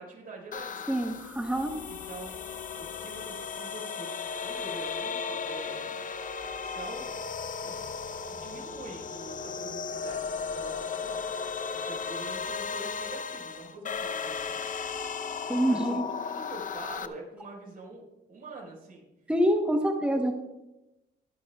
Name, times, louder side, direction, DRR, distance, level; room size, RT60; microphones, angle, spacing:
voice 1, 0.0-1.2 1.9-2.4 2.8-6.0 6.6-7.1 7.6-11.4 11.7-14.7 15.7-16.0 16.2-19.1, right 2 dB, 45° right, -2 dB, 4.6 m, -45 dB
sound 1, 0.5-17.1, left 5 dB, 40° left, 0.7 m, -35 dB
voice 2, 0.9-1.7 15.5-16.0 19.3-20.3, equal, 5° right, 3 dB, 1.0 m, -26 dB
22.5 x 9.5 x 2.3 m, 0.96 s
cardioid pair, 90°, 20 cm